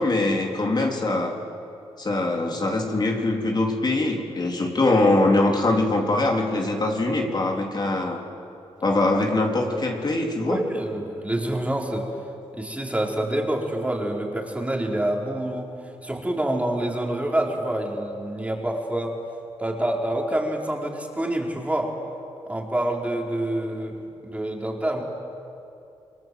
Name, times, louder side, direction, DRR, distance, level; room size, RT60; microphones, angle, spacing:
voice 1, 0.0-1.3 2.0-8.2 8.8-10.6, left 2 dB, 40° left, 0 dB, 3.8 m, -22 dB
voice 2, 10.4-12.1 12.5-15.7 16.0-19.2 19.6-21.9 22.5-25.1, right 1 dB, 10° right, 0 dB, 4.6 m, -27 dB
28.5 x 23.0 x 7.9 m, 2.7 s
cardioid pair, 70°, 11 cm